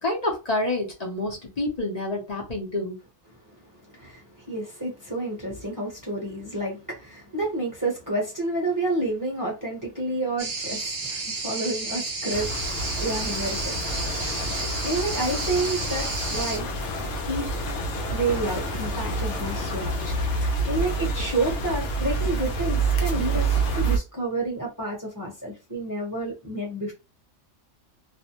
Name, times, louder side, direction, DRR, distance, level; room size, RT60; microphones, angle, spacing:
voice 1, 0.0-3.0, left 2 dB, 40° left, 0.6 m, -28 dB
voice 2, 3.9-12.7 13.0-16.7 17.3-17.5 18.1-26.9, right 2 dB, 15° right, 0.8 m, -30 dB
sound 1, 10.4-16.6, right 3 dB, 65° right, 0.4 m, -31 dB
sound 2, 12.3-24.0, right 2 dB, 70° left, 0.9 m, -28 dB
2.5 x 2.1 x 2.8 m
omnidirectional pair, 1.3 m